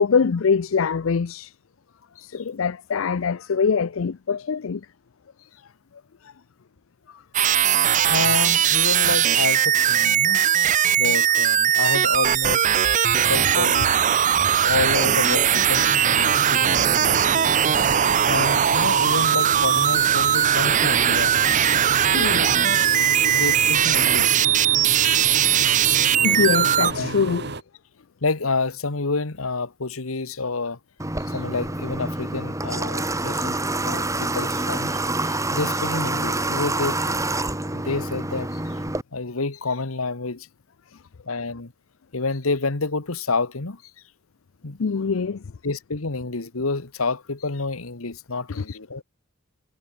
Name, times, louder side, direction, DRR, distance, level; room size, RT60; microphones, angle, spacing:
voice 1, 0.0-1.5 2.2-4.8 14.5-14.6 21.8-22.6 26.2-27.4 44.8-45.4 48.6-48.7, left 5 dB, 70° left, 0.5 m, -23 dB
sound 1, 7.3-26.9, right 9 dB, 35° right, 0.5 m, -19 dB
voice 2, 8.1-10.4 11.0-12.8 13.1-13.9 14.6-17.2 17.6-17.7 18.3-21.3 23.2-24.4 27.0-27.5 28.2-30.8 31.2-33.6 33.8-37.2 37.7-38.6 39.1-40.5 41.2-41.7 42.1-43.8 44.6-44.8 45.6-49.0, left 3 dB, 85° left, 1.5 m, -29 dB
sound 2, 15.7-27.6, right 2 dB, 50° right, 2.1 m, -32 dB
Water / Water tap faucet, 31.0-39.0, right 2 dB, 15° right, 3.4 m, -27 dB
head